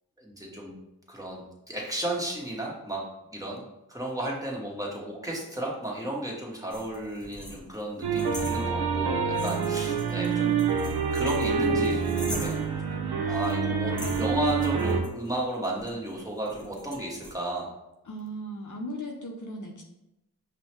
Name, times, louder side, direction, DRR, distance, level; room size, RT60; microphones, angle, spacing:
voice 1, 0.2-0.7 1.1-3.0 3.3-3.6 3.9-10.6 11.1-17.7, right 1 dB, 10° right, -4 dB, 1.3 m, -33 dB
sound 1, 6.7-9.1 9.3-12.8 13.4-13.6 14.0-17.3, equal, 10° left, 0.8 m, -43 dB
sound 2, 8.0-15.0, right 5 dB, 90° right, 0.6 m, -27 dB
voice 2, 18.0-19.8, equal, 55° left, 1 dB, 0.7 m, -37 dB
5.3 x 2.2 x 3.0 m, 0.91 s
supercardioid pair, 40°, 37 cm